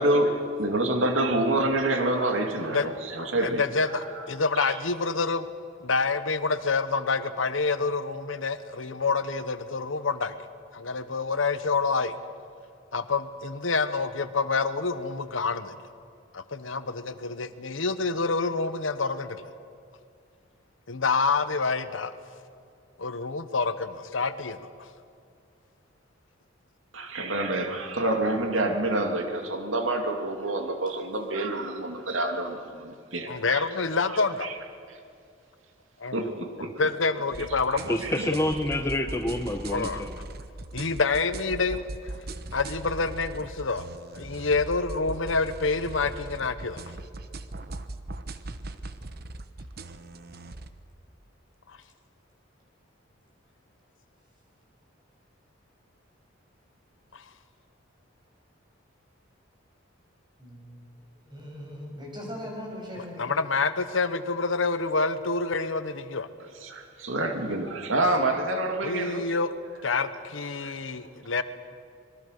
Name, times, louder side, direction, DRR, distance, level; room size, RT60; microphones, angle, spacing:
voice 1, 0.0-4.3 4.6-4.8 26.9-33.7 34.1-34.5 34.9-35.0 36.1-36.9 37.6-38.3 66.6-69.3 70.6-70.7, right 2 dB, 85° right, 4 dB, 2.5 m, -28 dB
voice 2, 3.4-5.5 5.8-10.3 10.7-12.1 12.9-15.7 16.3-19.4 20.9-22.1 23.0-24.7 33.3-34.5 36.0-36.3 36.8-38.0 39.7-40.0 40.7-41.8 42.5-43.9 44.1-46.8 57.1-57.2 63.2-66.3 68.8-69.5 69.8-71.4, left 4 dB, 80° left, 11 dB, 1.1 m, -27 dB
sound 1, 37.3-50.7, right 2 dB, 50° right, 1.0 m, -40 dB
voice 3, 37.9-40.1, left 1 dB, 15° left, 5 dB, 0.9 m, -28 dB
voice 4, 60.4-63.4, equal, 25° right, -1 dB, 6.6 m, -40 dB
26.5 x 21.5 x 6.6 m, 2.4 s
head